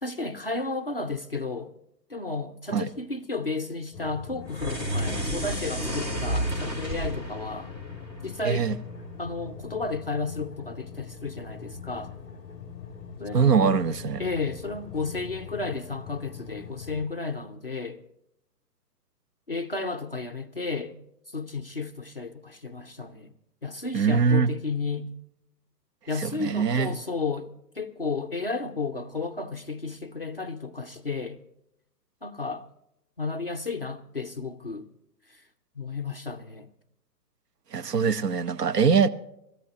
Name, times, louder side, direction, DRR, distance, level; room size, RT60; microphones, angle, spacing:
voice 1, 0.0-1.7 2.1-7.7 8.2-8.7 9.2-12.1 13.2-13.9 14.2-18.0 19.5-21.0 21.3-23.3 23.6-25.1 26.1-31.4 32.2-32.7 33.2-34.9 35.3-35.4 35.8-36.7, left 3 dB, 40° left, 0.4 m, -33 dB
sound 1, 3.9-17.1, left 6 dB, 10° left, 1.6 m, -42 dB
sound 2, 4.5-8.9, right 1 dB, 25° right, 1.6 m, -31 dB
voice 2, 8.4-8.8 13.3-14.2 23.9-24.5 26.2-26.9 37.7-39.1, right 6 dB, 70° right, 1.0 m, -22 dB
25.0 x 14.0 x 2.8 m
hypercardioid pair, 160°, 50 cm